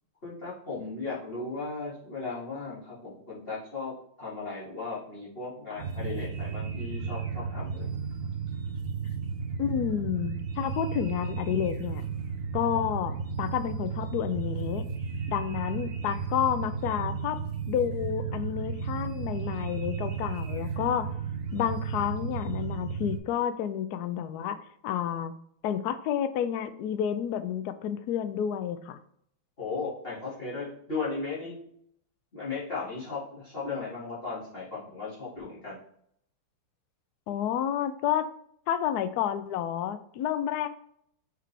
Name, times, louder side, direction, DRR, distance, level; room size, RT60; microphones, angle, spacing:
voice 1, 0.2-3.9 4.2-7.9 29.6-31.5 32.3-35.8, left 4 dB, 25° left, -9 dB, 2.2 m, -36 dB
sound 1, 5.8-23.2, right 6 dB, 55° right, 1.0 m, -34 dB
voice 2, 9.6-12.0 12.5-14.8 15.3-17.4 17.7-21.1 21.5-24.6 24.8-25.3 25.6-29.0 37.3-38.3 38.7-40.7, left 9 dB, 80° left, 11 dB, 0.8 m, -30 dB
5.7 x 4.9 x 3.4 m, 0.69 s
omnidirectional pair, 2.3 m